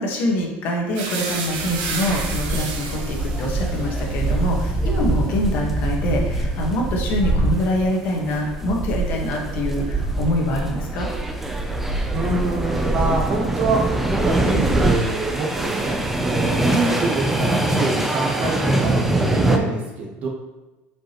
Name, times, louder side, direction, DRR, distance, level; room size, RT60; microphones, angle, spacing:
voice 1, 0.0-11.1 16.7-17.0, left 1 dB, 45° left, 0 dB, 1.4 m, -24 dB
sound 1, 0.9-8.9 9.2-10.3, right 4 dB, 65° right, 1.2 m, -34 dB
sound 2, 1.5-19.6, right 2 dB, 5° right, 0.5 m, -23 dB
Meow, 1.7-15.7, right 1 dB, 10° left, 1.1 m, -40 dB
voice 2, 12.1-20.3, right 3 dB, 35° right, 0 dB, 1.0 m, -26 dB
7.9 x 5.1 x 3.0 m, 1.1 s
cardioid pair, 175°, 4 cm